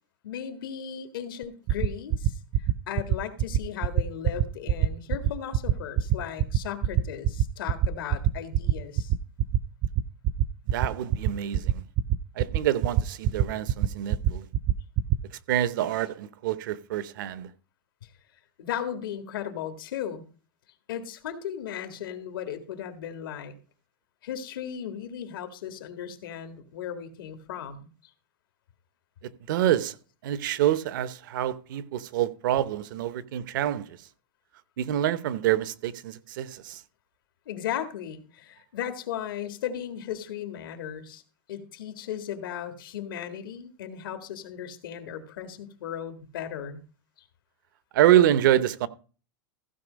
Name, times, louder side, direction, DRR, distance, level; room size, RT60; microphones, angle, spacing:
voice 1, 0.2-2.4 2.9-9.1 18.6-20.2 20.9-23.5 24.2-27.9 37.5-41.2 41.5-46.8, left 9 dB, 80° left, 1.9 m, -36 dB
sound 1, 1.4-15.2, right 10 dB, 35° right, 0.5 m, -23 dB
voice 2, 10.7-11.8 12.4-14.5 15.5-17.5 29.5-30.0 30.2-34.0 34.8-36.8 47.9-48.9, right 12 dB, 65° right, 0.8 m, -26 dB
15.0 x 5.4 x 5.1 m
supercardioid pair, 155°, 11 cm